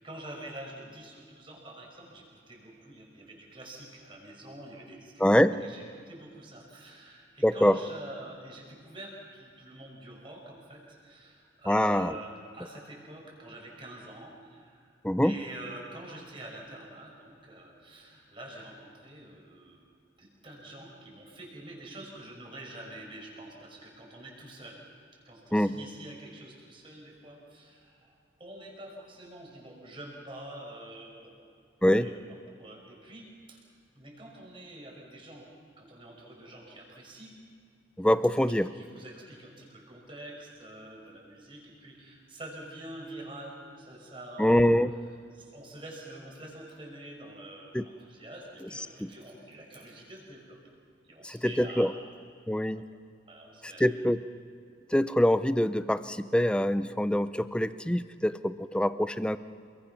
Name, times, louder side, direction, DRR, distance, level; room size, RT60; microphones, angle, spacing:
voice 1, 0.0-5.3 5.6-15.0 15.2-19.8 20.2-24.8 25.3-31.4 31.9-33.6 33.9-35.5 35.8-37.3 38.7-44.6 45.3-50.6 51.1-52.0 52.7-52.8 53.3-53.9, right 1 dB, 30° right, -1 dB, 5.9 m, -46 dB
voice 2, 5.2-5.6 7.4-7.8 11.7-12.1 15.0-15.3 25.5-25.7 31.8-32.1 38.0-38.7 44.4-44.9 47.7-47.8 49.0-49.1 51.2-51.9 52.5-52.8 53.8-54.2 54.9-59.4, equal, 5° left, 12 dB, 0.5 m, -24 dB
28.5 x 22.0 x 6.1 m, 2.3 s
head